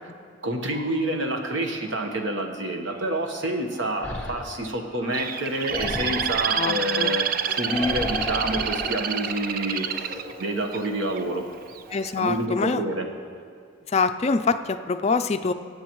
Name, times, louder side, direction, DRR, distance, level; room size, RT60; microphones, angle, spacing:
voice 1, 0.4-11.4 12.2-13.1, right 1 dB, 70° right, 3 dB, 1.2 m, -28 dB
sound 1, 0.7-2.5 2.8-12.3, left 1 dB, 30° right, 2.4 m, -45 dB
sound 2, 3.9-4.6 5.7-6.5 7.7-8.9, left 2 dB, 5° left, 1.1 m, -33 dB
Bird, 5.1-11.2 11.8-12.1, right 8 dB, 45° right, 0.4 m, -28 dB
voice 2, 6.5-7.1 11.9-12.8 13.9-15.5, left 4 dB, 30° left, 9 dB, 0.4 m, -24 dB
23.5 x 8.4 x 3.1 m, 2.3 s
head